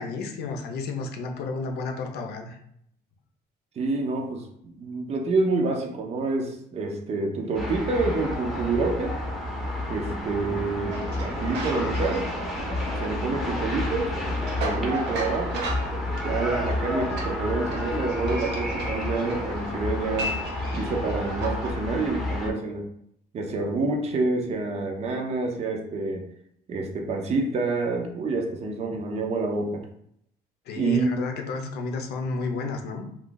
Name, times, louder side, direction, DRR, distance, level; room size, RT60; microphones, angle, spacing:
voice 1, 0.0-2.6 30.7-33.1, left 3 dB, 75° left, 4 dB, 0.6 m, -32 dB
voice 2, 3.8-9.1 9.9-12.2 13.0-14.1 14.6-15.7 16.2-20.3 20.7-22.8 23.3-26.2 26.7-29.8 30.8-31.1, right 3 dB, 40° right, 2 dB, 0.6 m, -27 dB
sound 1, 7.5-22.5, left 1 dB, ahead, 0.7 m, -30 dB
sound 2, 10.9-21.7, right 2 dB, 90° right, 0.7 m, -36 dB
2.5 x 2.4 x 3.8 m, 0.72 s
cardioid pair, 110°, 17 cm